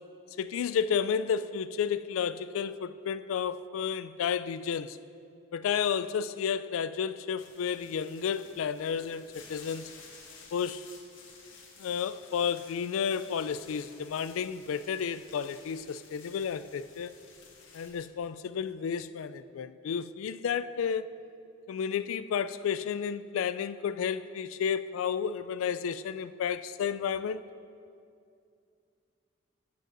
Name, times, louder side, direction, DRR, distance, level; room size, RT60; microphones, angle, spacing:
voice 1, 0.4-5.0 5.5-9.9 10.5-10.9 11.8-17.1 17.7-21.1 21.7-27.4, left 7 dB, 90° left, 0.3 m, -32 dB
sound 1, 7.4-18.1, left 4 dB, 70° left, 1.6 m, -53 dB
15.0 x 9.2 x 2.6 m
head